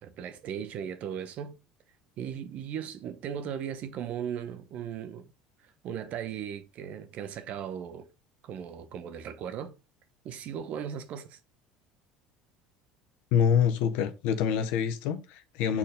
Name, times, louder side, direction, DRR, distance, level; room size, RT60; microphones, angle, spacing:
voice 1, 0.0-1.6 2.2-5.2 5.8-8.1 8.4-9.7 10.2-11.4 15.7-15.8, right 8 dB, 55° right, 1.0 m, -37 dB
voice 2, 13.3-15.8, left 8 dB, 70° left, 1.0 m, -26 dB
7.3 x 4.3 x 3.7 m
hypercardioid pair, 80°, 3 cm